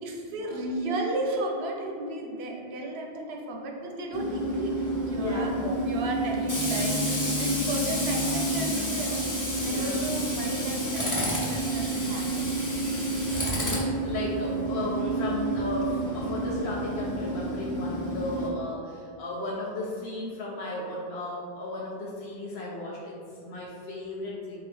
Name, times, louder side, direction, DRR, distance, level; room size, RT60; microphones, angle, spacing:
voice 1, 0.0-12.6, right 2 dB, 85° right, 1 dB, 0.8 m, -33 dB
Tools, 4.1-18.5, right 1 dB, 20° left, 0.6 m, -29 dB
voice 2, 5.2-5.5 9.6-10.2 12.9-24.6, left 2 dB, 85° left, -4 dB, 0.9 m, -35 dB
3.9 x 2.8 x 3.2 m, 2.3 s
omnidirectional pair, 1.0 m